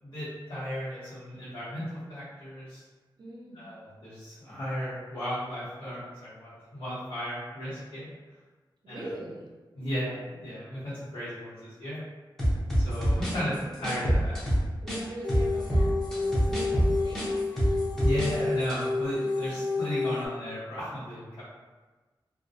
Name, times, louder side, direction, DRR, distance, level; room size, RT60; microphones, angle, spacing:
voice 1, 0.0-2.8 3.5-8.1 8.9-9.1 9.7-12.0 12.8-13.5 13.8-14.3 18.0-21.4, equal, 90° left, -15 dB, 1.0 m, -35 dB
voice 2, 3.2-3.7 8.8-9.5 10.0-10.3 12.8-14.5 14.8-17.3 19.2-19.5, right 1 dB, 60° right, -4 dB, 0.6 m, -43 dB
sound 1, 12.4-15.0 15.3-18.3 18.6-18.8, equal, 5° left, 0.7 m, -26 dB
sound 2, 15.2-20.3, left 3 dB, 60° left, 0.4 m, -30 dB
2.2 x 2.1 x 2.6 m, 1.3 s
wide cardioid pair, 120°, 8 cm